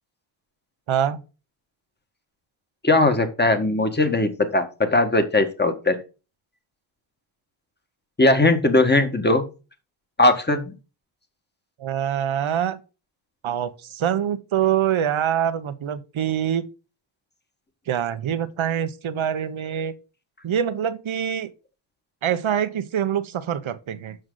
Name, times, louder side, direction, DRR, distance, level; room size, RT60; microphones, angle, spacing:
voice 1, 0.9-1.2 11.8-12.8 13.4-16.7 17.9-19.9 20.4-21.5 22.2-24.2, right 9 dB, 75° right, 1.0 m, -25 dB
voice 2, 2.8-6.0 8.2-9.4 10.2-10.7, left 2 dB, 20° left, 1.6 m, -19 dB
7.8 x 6.3 x 3.9 m
wide cardioid pair, 100°, 48 cm